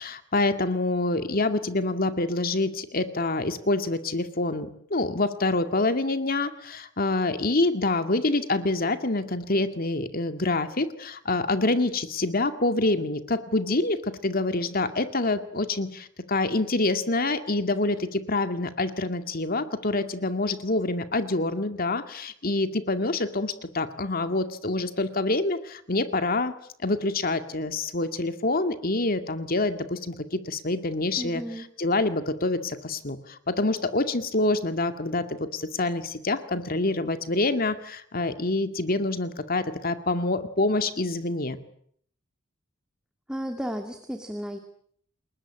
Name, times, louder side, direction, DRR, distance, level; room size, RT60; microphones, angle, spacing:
voice 1, 0.0-26.5 26.8-41.6, left 2 dB, 45° left, 8 dB, 2.2 m, -26 dB
voice 2, 31.2-31.7 43.3-44.6, equal, 5° right, 5 dB, 2.4 m, -33 dB
30.0 x 21.0 x 8.8 m, 0.65 s
head